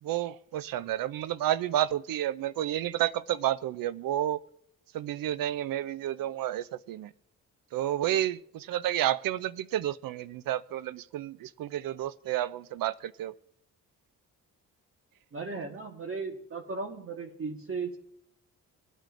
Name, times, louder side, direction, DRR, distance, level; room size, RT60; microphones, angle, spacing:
voice 1, 0.0-4.4 4.9-7.1 7.7-13.3, right 12 dB, 85° right, 0.5 m, -30 dB
voice 2, 15.3-18.0, right 4 dB, 40° right, 1.4 m, -36 dB
24.0 x 9.1 x 2.6 m
cardioid pair, 95°, 33 cm